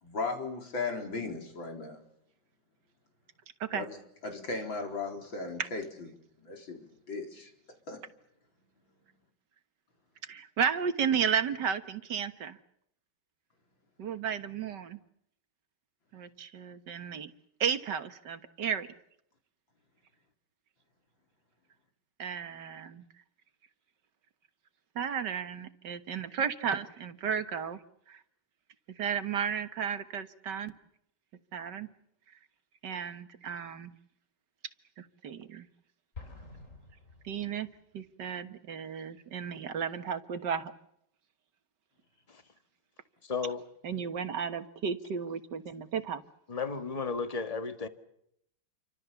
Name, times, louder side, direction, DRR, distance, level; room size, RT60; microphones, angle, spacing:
voice 1, 0.0-2.0 3.7-4.0 4.2-6.1 6.4-7.5 7.9-8.0, left 3 dB, 85° left, 4.9 m, -36 dB
voice 2, 10.2-12.6 14.0-15.0 16.1-17.3 17.6-18.9 22.2-23.0 25.0-27.8 28.1-28.2 29.0-30.7 31.5-31.9 32.8-33.9 35.0-35.7 37.2-37.7 37.9-40.7 43.8-46.2, right 7 dB, 65° right, 1.9 m, -33 dB
Explosion, 36.1-38.0, left 3 dB, 40° left, 3.9 m, -49 dB
voice 3, 43.2-43.7 46.5-47.9, left 5 dB, 20° left, 1.7 m, -34 dB
29.0 x 25.0 x 7.1 m
omnidirectional pair, 2.1 m